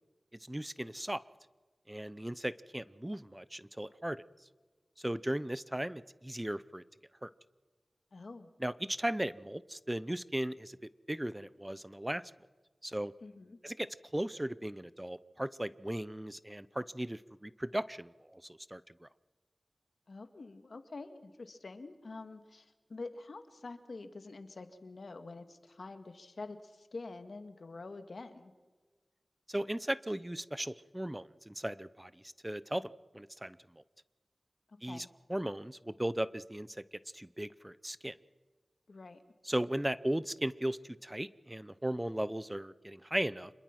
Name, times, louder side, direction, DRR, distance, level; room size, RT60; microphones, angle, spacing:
voice 1, 0.5-1.2 1.9-4.2 5.0-6.8 7.2-7.3 8.6-10.8 11.1-12.2 12.8-13.1 13.6-19.1 29.5-33.6 34.8-36.7 37.1-38.2 39.4-43.5, right 1 dB, 15° right, 17 dB, 0.7 m, -37 dB
voice 2, 8.1-8.5 13.2-13.6 20.1-28.5 34.7-35.1 38.9-39.2, left 3 dB, 75° left, 9 dB, 1.8 m, -47 dB
27.0 x 21.5 x 6.0 m, 1.3 s
cardioid pair, 40°, 0 cm